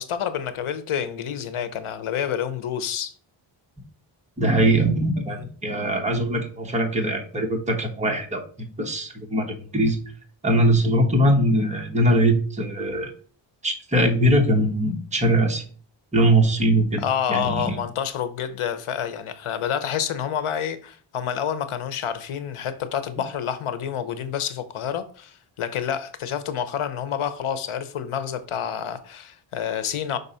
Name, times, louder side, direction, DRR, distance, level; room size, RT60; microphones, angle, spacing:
voice 1, 0.0-3.1 5.3-5.5 17.0-30.2, left 8 dB, 80° left, 0.9 m, -28 dB
voice 2, 4.4-10.0 10.4-13.1 13.6-15.6 16.1-17.0 17.3-17.8, right 1 dB, 15° right, 1.1 m, -21 dB
5.5 x 4.0 x 5.5 m
wide cardioid pair, 160°, 49 cm